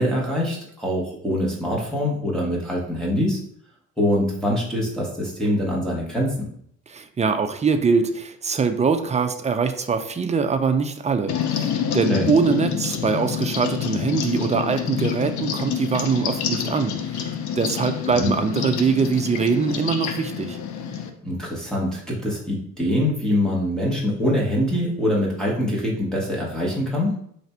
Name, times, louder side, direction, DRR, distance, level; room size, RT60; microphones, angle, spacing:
voice 1, 0.0-3.4 4.0-6.4 12.1-12.3 18.1-18.3 21.2-27.2, left 1 dB, ahead, -5 dB, 1.1 m, -24 dB
voice 2, 6.9-20.6, right 5 dB, 25° right, 7 dB, 0.4 m, -23 dB
sound 1, 11.3-21.1, left 8 dB, 70° left, 0.6 m, -27 dB
3.3 x 2.6 x 4.3 m, 0.67 s
cardioid pair, 90°, 30 cm